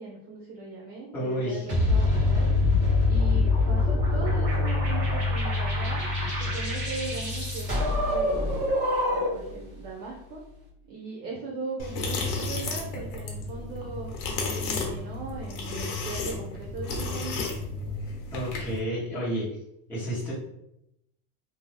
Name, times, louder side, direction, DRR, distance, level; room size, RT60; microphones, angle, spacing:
voice 1, 0.0-2.5 3.1-6.0 6.4-8.5 9.1-10.5 10.8-17.5, right 3 dB, 50° right, -3 dB, 0.7 m, -39 dB
voice 2, 1.1-1.7 18.3-19.4 19.9-20.3, equal, 5° left, -10 dB, 1.1 m, -30 dB
sound 1, 1.7-9.5, left 2 dB, 15° right, 1.4 m, -24 dB
sound 2, 11.8-18.8, left 3 dB, 80° left, 1.0 m, -33 dB
2.7 x 2.1 x 3.3 m, 0.80 s
cardioid pair, 150°, 45 cm